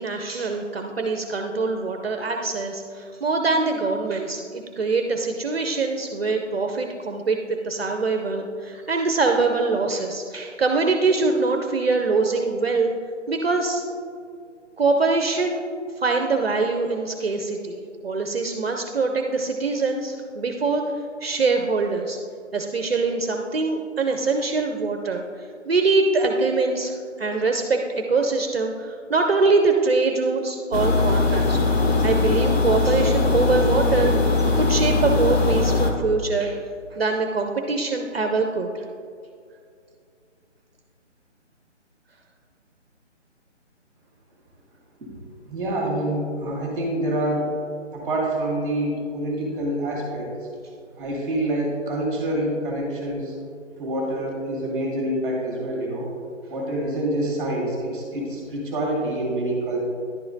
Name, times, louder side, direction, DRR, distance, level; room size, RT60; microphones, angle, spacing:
voice 1, 0.0-12.9 13.3-13.8 14.8-15.6 16.0-20.9 21.2-22.2 22.5-31.6 32.0-34.2 34.6-36.6 36.9-38.8, right 3 dB, 55° right, 4 dB, 0.6 m, -23 dB
sound 1, 30.7-35.9, left 3 dB, 55° left, 1.0 m, -20 dB
voice 2, 45.4-47.5 47.9-50.3 51.0-53.3 53.8-56.1 56.5-59.8, right 1 dB, 10° right, -3 dB, 1.6 m, -26 dB
10.5 x 4.8 x 2.6 m, 2.3 s
figure-of-eight pair, 155°, 36 cm